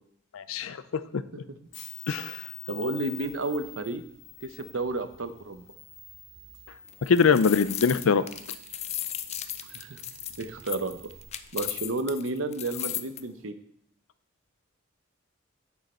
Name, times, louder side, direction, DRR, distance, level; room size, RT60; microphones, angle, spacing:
voice 1, 0.3-0.8 1.1-1.2 2.1-2.4 7.0-8.2, left 5 dB, 90° left, 15 dB, 0.5 m, -22 dB
sound 1, 1.7-11.3, left 4 dB, 70° left, 2.4 m, -47 dB
voice 2, 2.7-4.0 4.4-5.6 9.6-10.0 10.4-11.0 11.5-13.5, right 2 dB, 75° right, 10 dB, 0.8 m, -32 dB
sound 2, 6.9-13.2, left 12 dB, 30° left, 0.4 m, -36 dB
8.0 x 6.4 x 4.3 m, 0.66 s
head